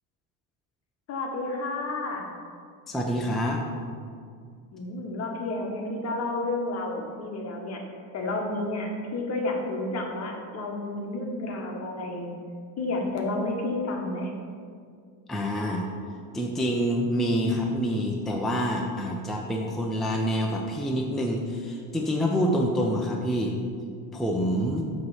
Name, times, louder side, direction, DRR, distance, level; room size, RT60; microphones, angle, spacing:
voice 1, 1.1-2.3 4.7-7.8 8.1-12.3 12.8-14.3, left 2 dB, 45° left, 1 dB, 1.2 m, -31 dB
voice 2, 2.9-3.6 15.3-15.9 16.3-23.5 24.1-24.8, equal, ahead, -1 dB, 0.5 m, -27 dB
7.9 x 3.1 x 5.5 m, 2.2 s
cardioid pair, 125°, 36 cm